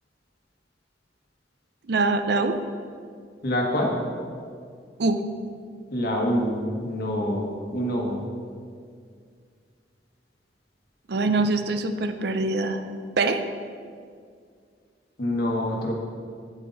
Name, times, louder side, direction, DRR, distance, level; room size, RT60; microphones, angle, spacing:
voice 1, 1.9-2.6 5.0-5.3 11.1-12.9 13.2-13.4, right 3 dB, 60° right, 8 dB, 0.6 m, -24 dB
voice 2, 3.4-3.9 5.9-6.6 6.8-8.2 15.2-15.9, equal, 55° left, 0 dB, 1.5 m, -26 dB
9.6 x 8.1 x 4.0 m, 2.2 s
head